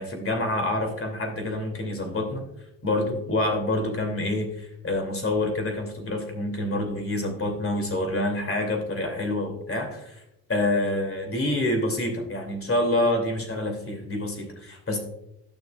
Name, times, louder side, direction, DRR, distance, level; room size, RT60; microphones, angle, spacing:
voice 1, 0.0-2.4 2.8-10.2 10.5-15.0, left 1 dB, 30° left, 3 dB, 2.6 m, -27 dB
12.0 x 6.7 x 2.3 m, 0.84 s
hypercardioid pair, 55°, 41 cm